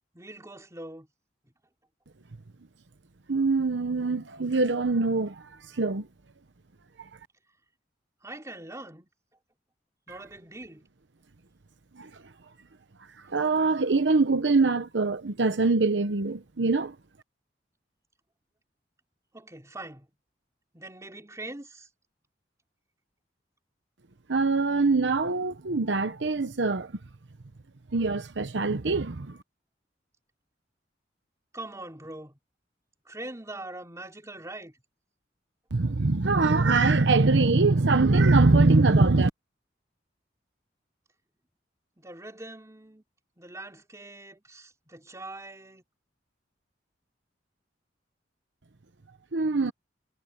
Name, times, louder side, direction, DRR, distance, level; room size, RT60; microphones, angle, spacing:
voice 1, 0.1-1.1 8.2-9.1 10.1-10.8 19.3-20.1 20.7-21.9 31.5-32.3 33.1-34.7 42.0-43.0 43.4-45.8, right 2 dB, 15° right, 3.5 m, -42 dB
voice 2, 3.3-5.4 5.7-6.1 12.0-12.1 13.3-16.9 24.3-26.9 27.9-29.4 35.7-39.3 49.3-49.7, right 3 dB, 70° right, 0.9 m, -23 dB
head